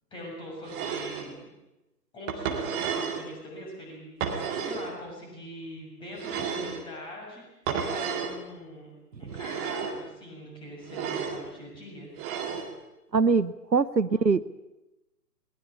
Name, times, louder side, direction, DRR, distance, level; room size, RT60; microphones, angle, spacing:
voice 1, 0.1-1.5 2.1-4.1 4.4-7.4 7.7-8.9 9.2-12.1, left 1 dB, 10° left, -1 dB, 6.7 m, -42 dB
sound 1, 0.7-1.3 2.3-3.3 4.2-4.9 6.2-6.8 7.7-8.4 9.3-10.0 10.9-11.4 12.2-12.7, right 6 dB, 15° right, 2.1 m, -32 dB
voice 2, 13.1-14.5, right 4 dB, 85° right, 15 dB, 1.1 m, -23 dB
21.5 x 19.5 x 8.5 m, 0.97 s
figure-of-eight pair, 140°, 49 cm